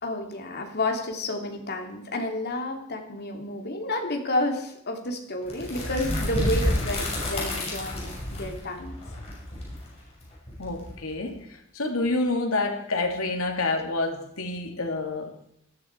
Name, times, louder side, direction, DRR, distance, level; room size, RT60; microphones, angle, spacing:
voice 1, 0.0-9.0, left 1 dB, 50° left, 2 dB, 2.9 m, -30 dB
sound 1, 5.5-11.3, left 1 dB, 30° left, 5.9 m, -30 dB
voice 2, 10.6-15.3, left 2 dB, 80° left, 2 dB, 2.9 m, -28 dB
18.0 x 13.5 x 4.7 m, 0.75 s
head